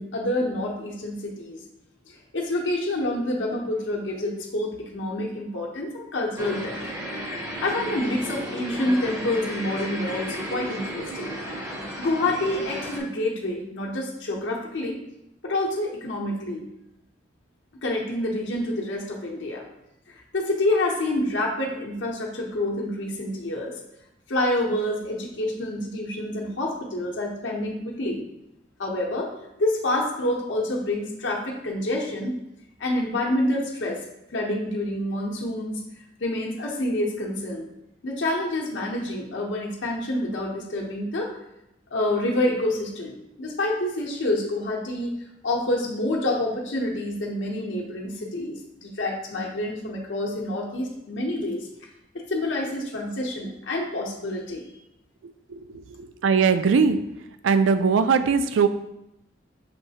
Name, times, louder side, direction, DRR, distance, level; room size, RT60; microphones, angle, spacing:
voice 1, 0.0-1.6 2.3-6.8 7.6-11.4 12.0-15.0 15.4-16.7 17.8-19.6 20.1-23.7 24.3-28.2 28.8-29.3 29.6-32.3 32.8-34.0 34.3-35.8 36.2-37.7 38.0-41.3 41.9-45.2 45.4-51.7 52.3-54.6, left 1 dB, 70° left, -1 dB, 0.7 m, -27 dB
sound 1, 6.4-13.0, equal, 15° right, 0.6 m, -33 dB
voice 2, 55.5-57.0 57.4-58.7, right 5 dB, 85° right, 10 dB, 0.4 m, -21 dB
5.9 x 3.1 x 2.8 m, 0.86 s
head